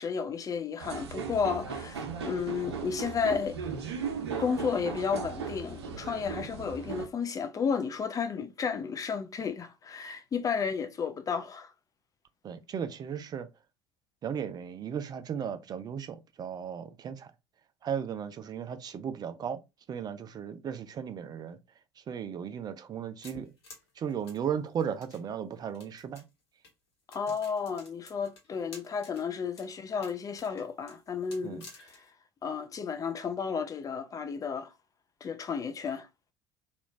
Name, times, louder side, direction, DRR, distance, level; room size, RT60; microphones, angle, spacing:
voice 1, 0.0-3.6 4.4-11.7 27.1-32.0 32.4-34.7 35.2-36.1, left 6 dB, 25° left, 0.5 m, -32 dB
sound 1, 0.8-7.1, right 6 dB, 70° right, 0.6 m, -37 dB
voice 2, 12.4-13.5 14.2-17.3 17.8-19.6 19.9-21.6 22.1-23.5 24.0-26.2 31.4-31.6, right 8 dB, 30° right, 0.5 m, -36 dB
sound 2, 23.2-25.2 25.7-26.3 26.6-26.7 27.1-29.2 29.5-29.7 30.0-32.1, left 3 dB, 70° left, 1.2 m, -51 dB
3.1 x 2.5 x 3.1 m
figure-of-eight pair, 65°, 14 cm